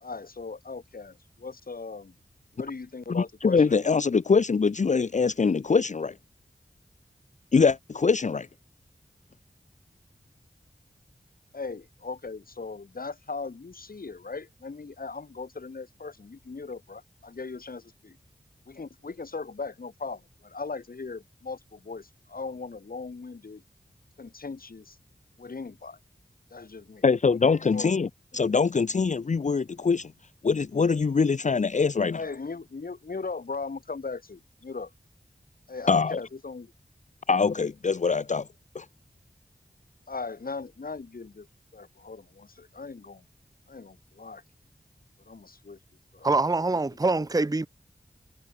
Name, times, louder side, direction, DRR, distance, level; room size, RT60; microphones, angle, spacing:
voice 1, 0.0-2.2 2.5-3.8 11.5-18.2 18.7-23.6 24.2-25.0 25.4-26.0 26.5-27.0 27.7-27.9 32.1-34.9 35.7-36.7 40.1-41.5 41.7-43.3 43.7-44.4 45.3-45.8 46.1-46.3, left 4 dB, 70° left, 1.9 m, -38 dB
voice 2, 3.1-6.1 7.5-8.5 27.0-28.1 28.3-30.1 30.4-32.2 35.9-36.2 37.3-38.5 38.7-38.9, left 5 dB, 50° left, 0.5 m, -23 dB
voice 3, 46.2-47.7, right 3 dB, 25° right, 0.7 m, -24 dB
wide cardioid pair, 50°, 16 cm